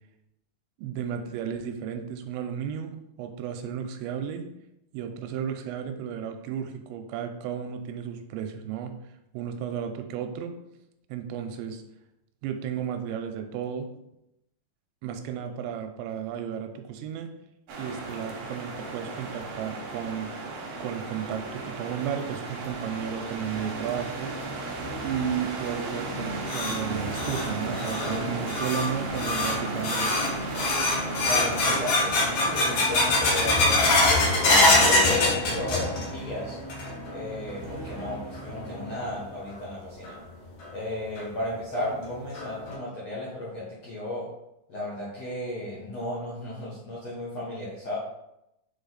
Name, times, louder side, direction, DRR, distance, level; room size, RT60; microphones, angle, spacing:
voice 1, 0.8-4.5 4.9-9.0 9.3-10.5 11.1-11.8 12.4-13.9 15.0-17.3 17.8-20.3 20.8-24.3 25.0-30.2, right 8 dB, 85° right, 6 dB, 2.9 m, -33 dB
sound 1, 17.7-35.0, right 3 dB, 65° right, 2.1 m, -36 dB
sound 2, 22.7-39.5, right 1 dB, 20° right, 1.1 m, -41 dB
sound 3, 26.1-36.2 36.5-37.1 37.5-37.6 38.3-38.4 40.0-40.1 40.6-40.7 41.2-41.3 41.7-41.8 42.4-42.7, left 2 dB, 80° left, 1.5 m, -24 dB
voice 2, 31.3-33.8 34.4-36.6 37.1-40.2 40.7-44.3 44.7-48.0, left 1 dB, 65° left, -7 dB, 1.6 m, -34 dB
7.2 x 4.1 x 4.0 m, 0.85 s
omnidirectional pair, 5.2 m